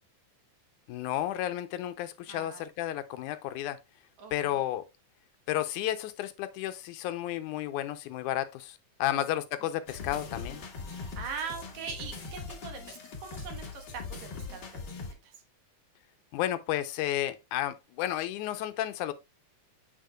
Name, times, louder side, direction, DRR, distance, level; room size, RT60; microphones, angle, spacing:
voice 1, 0.9-3.8 4.3-4.9 5.5-10.6 16.3-19.1, left 13 dB, 80° left, 2.0 m, -32 dB
voice 2, 2.3-2.6 4.2-4.6 9.1-9.3 10.9-15.3, right 5 dB, 70° right, 2.4 m, -42 dB
sound 1, 9.9-15.1, left 4 dB, 45° left, 1.5 m, -41 dB
7.4 x 6.4 x 2.2 m
omnidirectional pair, 3.6 m